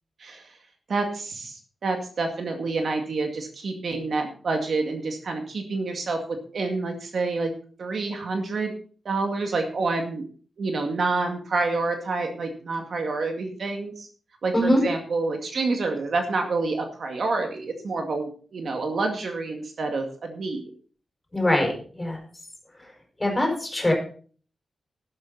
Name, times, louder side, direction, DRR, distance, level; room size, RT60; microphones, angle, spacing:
voice 1, 0.9-7.5 7.8-8.7 9.0-10.2 10.6-14.1 14.4-20.7, right 3 dB, 55° right, 4 dB, 2.1 m, -28 dB
voice 2, 21.3-22.2 23.2-23.9, left 1 dB, 15° left, 0 dB, 5.2 m, -22 dB
12.5 x 11.5 x 4.1 m, 0.42 s
wide cardioid pair, 160°, 0 cm